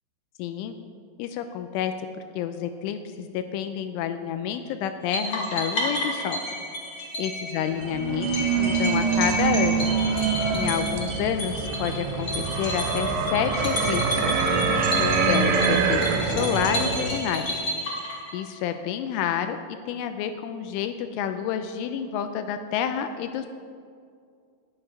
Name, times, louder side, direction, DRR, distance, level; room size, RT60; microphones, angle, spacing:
voice 1, 0.4-0.7 1.2-1.9 2.4-6.4 7.2-9.9 10.5-14.4 15.0-17.6 18.3-19.6 19.9-23.5, left 9 dB, 85° left, 8 dB, 3.0 m, -29 dB
sound 1, 5.1-18.6, left 1 dB, 35° left, 2.0 m, -31 dB
sound 2, 7.7-17.1, right 5 dB, 90° right, 3.5 m, -25 dB
11.5 x 7.9 x 9.3 m, 2.2 s
omnidirectional pair, 5.7 m